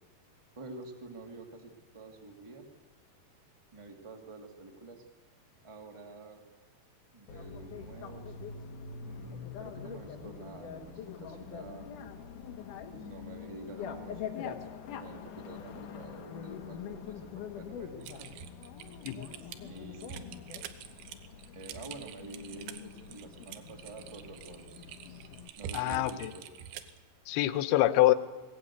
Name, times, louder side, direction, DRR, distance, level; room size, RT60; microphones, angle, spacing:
voice 1, 0.5-2.7 3.7-5.0 5.6-6.4 7.1-8.4 9.0-11.9 13.0-14.2 15.0-18.3 19.6-20.4 21.5-24.8 25.6-26.5, right 3 dB, 25° right, 3 dB, 0.6 m, -48 dB
Bicycle, 7.3-25.5, left 7 dB, 65° left, 2.6 m, -44 dB
Typing, 18.0-27.0, right 9 dB, 85° right, 3.0 m, -46 dB
voice 2, 25.7-26.3 27.3-28.1, left 16 dB, 80° left, 13 dB, 2.7 m, -25 dB
21.0 x 17.5 x 8.4 m, 1.4 s
omnidirectional pair, 4.5 m